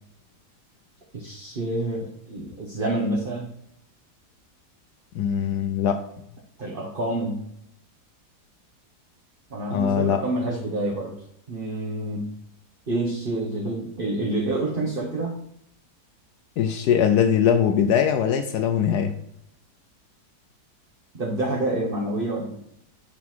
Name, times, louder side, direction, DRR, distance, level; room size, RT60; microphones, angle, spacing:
voice 1, 1.1-3.5 6.6-7.5 9.5-11.1 11.5-12.3 12.9-15.4 21.1-22.6, right 2 dB, 35° right, -3 dB, 1.3 m, -28 dB
voice 2, 5.1-6.0 9.7-10.2 16.6-19.1, left 8 dB, 75° left, 7 dB, 1.2 m, -21 dB
8.3 x 4.0 x 4.5 m, 0.73 s
omnidirectional pair, 1.8 m